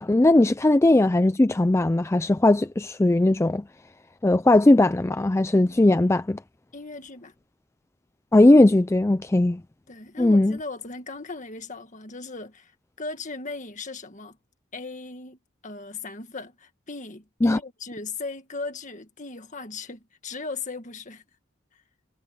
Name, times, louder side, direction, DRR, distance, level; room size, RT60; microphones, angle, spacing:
voice 1, 0.0-3.6 4.2-6.4 8.3-9.6 10.2-10.6 17.4-17.6, left 2 dB, 15° left, 0.3 m, -18 dB
voice 2, 5.6-6.0 6.7-7.3 9.9-12.7 13.0-14.4 14.7-21.2 21.7-21.8, left 3 dB, 35° left, 1.8 m, -37 dB
head